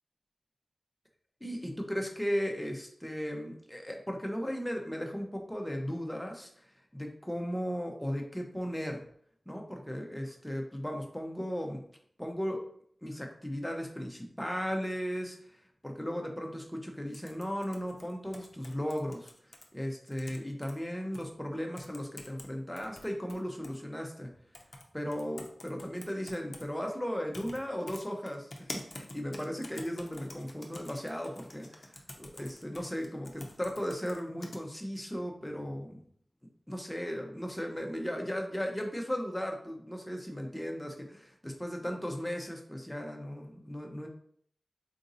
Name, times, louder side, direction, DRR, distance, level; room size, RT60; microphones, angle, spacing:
voice 1, 1.4-6.7 6.9-9.0 9.5-11.8 12.2-12.6 13.0-24.3 24.9-36.0 36.7-44.1, equal, 10° left, 2 dB, 0.6 m, -36 dB
sound 1, 17.1-19.6 20.1-20.7 21.1-21.2 21.8-22.5 22.8-23.8 24.5-24.8 25.1-26.6 27.3-27.6 27.9-34.6, left 2 dB, 55° left, 0.5 m, -46 dB
3.9 x 2.6 x 2.6 m, 0.62 s
wide cardioid pair, 55°, 0 cm